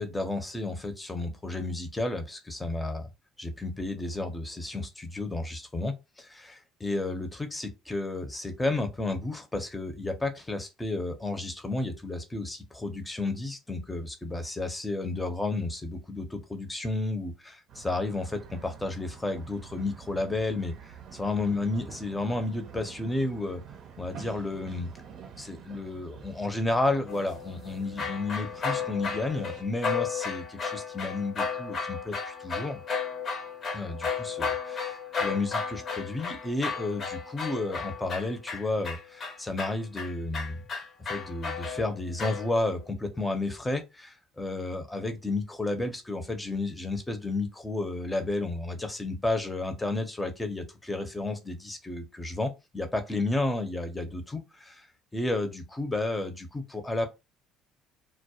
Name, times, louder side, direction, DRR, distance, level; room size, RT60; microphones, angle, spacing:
voice 1, 0.0-3.1 3.4-20.7 21.1-23.6 24.0-24.9 25.3-32.8 33.7-40.6 41.1-54.9 55.1-57.1, left 2 dB, 15° left, 0.7 m, -32 dB
sound 1, 17.7-29.6, right 7 dB, 60° right, 0.6 m, -48 dB
sound 2, 27.1-42.9, left 5 dB, 45° left, 0.7 m, -34 dB
2.3 x 2.1 x 2.8 m
supercardioid pair, 75°, 0 cm